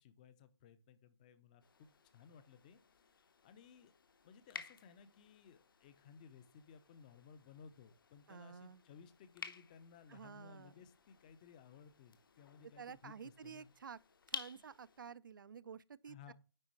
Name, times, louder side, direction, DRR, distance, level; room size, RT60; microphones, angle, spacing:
voice 1, 0.0-2.8 3.4-3.9 4.2-13.7 16.1-16.3, left 7 dB, 20° left, 0.6 m, -59 dB
sound 1, 1.6-15.1, left 6 dB, 50° left, 0.9 m, -54 dB
voice 2, 8.3-8.8 10.1-10.7 12.8-14.0 14.3-16.3, right 6 dB, 50° right, 0.4 m, -51 dB
9.7 x 4.3 x 4.4 m
figure-of-eight pair, 150°, 14 cm